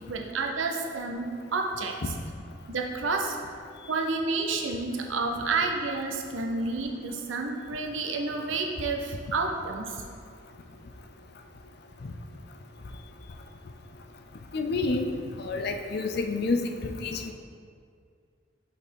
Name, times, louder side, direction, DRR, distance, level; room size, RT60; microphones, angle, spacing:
voice 1, 0.1-1.9 2.7-3.4 3.9-10.0, right 3 dB, 80° right, 2 dB, 0.7 m, -30 dB
voice 2, 14.5-15.1 15.4-17.3, left 3 dB, 55° left, 5 dB, 0.4 m, -29 dB
5.6 x 4.2 x 4.6 m, 2.2 s
head